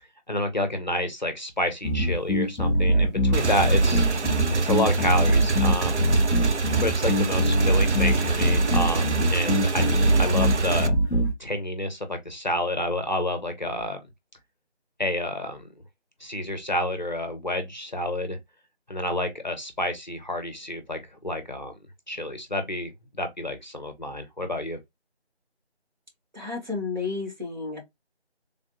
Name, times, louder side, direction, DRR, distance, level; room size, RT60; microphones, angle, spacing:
voice 1, 0.3-4.1 4.6-6.0 6.8-10.9 11.4-14.0 15.0-15.7 16.2-18.4 18.9-21.7 22.1-24.8, left 1 dB, 40° left, 0.6 m, -29 dB
sound 1, 1.8-11.3, equal, ahead, 0.7 m, -22 dB
Motorcycle / Engine, 3.3-10.9, right 4 dB, 90° right, 0.6 m, -26 dB
voice 2, 26.3-27.8, left 4 dB, 40° right, 1.4 m, -31 dB
3.4 x 2.6 x 2.6 m
figure-of-eight pair, 165°, 34 cm